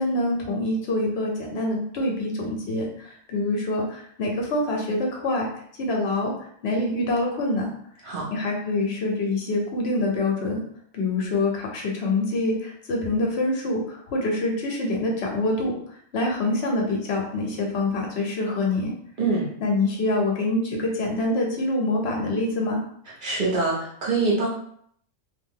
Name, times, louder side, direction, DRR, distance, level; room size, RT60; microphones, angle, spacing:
voice 1, 0.0-5.5 5.8-6.3 6.6-7.7 8.3-10.6 10.9-15.7 16.1-18.9 19.6-22.8, left 2 dB, 60° left, 0 dB, 1.0 m, -25 dB
voice 2, 23.2-24.5, right 3 dB, 45° right, -4 dB, 1.1 m, -24 dB
2.8 x 2.4 x 3.6 m, 0.65 s
omnidirectional pair, 1.3 m